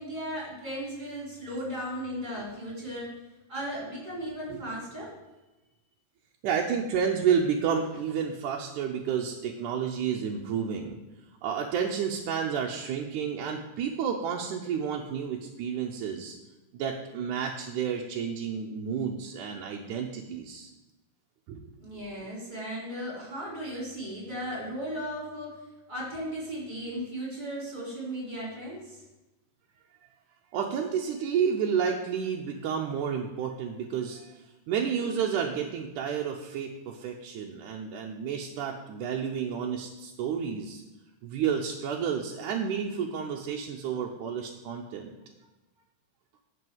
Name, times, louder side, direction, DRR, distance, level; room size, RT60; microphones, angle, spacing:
voice 1, 0.0-3.1 3.5-5.1 21.8-25.6 25.9-29.0, equal, 15° right, -4 dB, 4.1 m, -36 dB
voice 2, 6.4-11.0 11.4-16.4 16.7-20.7 21.5-21.7 30.5-40.8 41.2-45.1, right 7 dB, 75° right, 0 dB, 2.1 m, -30 dB
11.0 x 5.5 x 7.8 m, 1.0 s
omnidirectional pair, 3.9 m